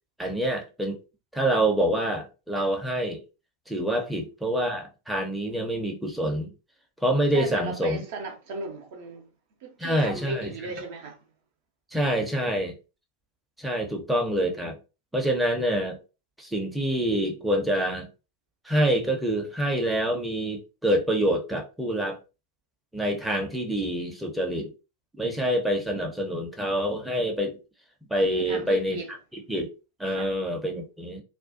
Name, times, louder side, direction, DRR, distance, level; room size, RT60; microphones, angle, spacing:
voice 1, 0.2-1.0 1.3-3.2 3.7-6.5 7.0-8.0 9.8-10.5 11.9-12.7 13.6-14.8 15.1-16.0 16.4-18.1 18.6-22.2 22.9-24.7 25.2-27.6 28.1-29.2 29.5-29.7 30.0-31.2, right 1 dB, 5° right, 0.6 m, -26 dB
voice 2, 7.3-9.3 9.6-11.2 28.4-29.1 30.1-30.3, right 3 dB, 50° right, 0.6 m, -36 dB
2.4 x 2.2 x 2.4 m
figure-of-eight pair, 90°, 0 cm